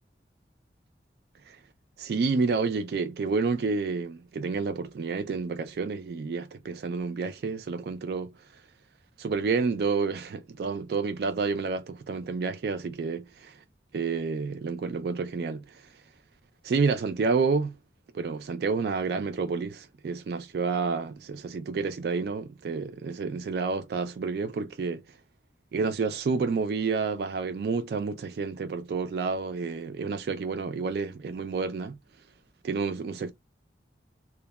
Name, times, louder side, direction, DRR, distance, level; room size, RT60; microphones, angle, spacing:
voice 1, 2.0-8.3 9.2-13.6 13.9-15.6 16.6-17.8 18.1-25.0 25.7-32.0 32.6-33.3, right 4 dB, 65° right, 0.3 m, -29 dB
2.9 x 2.1 x 2.2 m
head